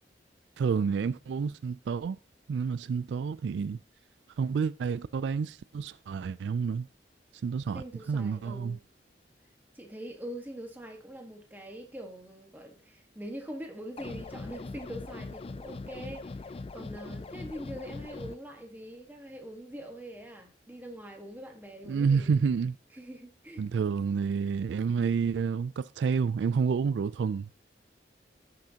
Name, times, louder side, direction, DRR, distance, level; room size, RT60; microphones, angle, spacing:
voice 1, 0.6-2.2 2.5-3.8 4.4-6.9 7.4-8.8 21.9-22.7 23.6-27.6, right 5 dB, 85° right, 0.3 m, -29 dB
voice 2, 7.7-8.8 9.7-22.4 22.9-23.7, equal, 10° right, 1.4 m, -43 dB
sound 1, 14.0-18.3, left 3 dB, 35° left, 0.4 m, -41 dB
15.5 x 6.0 x 2.8 m
head